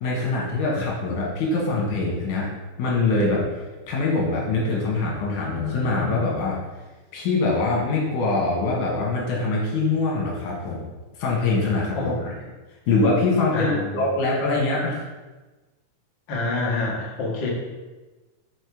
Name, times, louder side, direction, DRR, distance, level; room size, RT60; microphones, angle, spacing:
voice 1, 0.0-2.5 2.8-3.4 3.9-6.6 7.1-10.8 11.2-12.1 12.9-15.1, left 3 dB, 80° left, -3 dB, 2.8 m, -23 dB
voice 2, 13.5-14.0 16.3-17.5, left 2 dB, 45° left, -4 dB, 1.8 m, -27 dB
6.4 x 4.4 x 4.9 m, 1.2 s
omnidirectional pair, 3.5 m